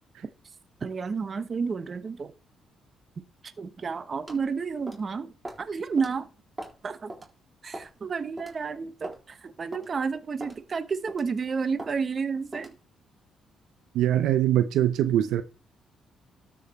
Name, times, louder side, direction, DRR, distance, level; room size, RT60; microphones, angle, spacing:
voice 1, 0.8-2.3 3.6-5.3 5.6-6.3 6.8-7.1 7.6-12.7, right 5 dB, 40° right, 1.1 m, -31 dB
sound 1, 4.3-4.5 4.9-5.1 5.4-5.6 6.0-6.1 6.6-6.8 7.1-7.3 7.7-8.0 8.4-8.5 9.0-9.2 9.7-9.9 10.4-10.6 11.1-11.3 11.8-12.0 12.5-12.8, right 1 dB, 15° right, 4.0 m, -40 dB
voice 2, 13.9-15.4, right 12 dB, 85° right, 0.7 m, -23 dB
13.0 x 5.1 x 4.2 m
cardioid pair, 90°, 0 cm